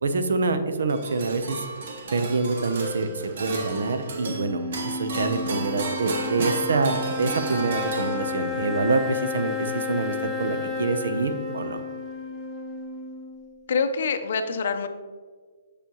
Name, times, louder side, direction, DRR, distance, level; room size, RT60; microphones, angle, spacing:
voice 1, 0.0-1.6 2.1-11.8, right 3 dB, 80° right, 9 dB, 0.7 m, -26 dB
sound 1, 0.9-8.6, right 3 dB, 45° right, 1.0 m, -34 dB
sound 2, 4.1-13.5, left 4 dB, 5° right, 0.7 m, -32 dB
voice 2, 13.7-14.9, left 5 dB, 50° left, 8 dB, 0.6 m, -25 dB
7.0 x 6.9 x 3.0 m, 1.5 s
hypercardioid pair, 175°, 0 cm